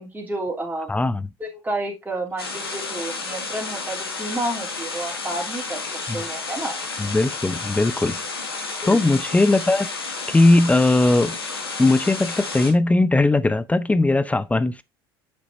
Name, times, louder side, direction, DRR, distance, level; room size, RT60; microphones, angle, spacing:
voice 1, 0.0-1.0 1.4-6.8 8.8-9.1, right 1 dB, 15° right, 3.1 m, -30 dB
voice 2, 0.9-1.3 6.1-6.2 7.0-8.2 8.9-9.9 10.3-11.4 11.8-14.8, left 2 dB, 10° left, 0.5 m, -19 dB
sound 1, 2.4-12.7, left 4 dB, 85° left, 1.7 m, -31 dB
7.8 x 6.1 x 2.7 m
figure-of-eight pair, 65°, 12 cm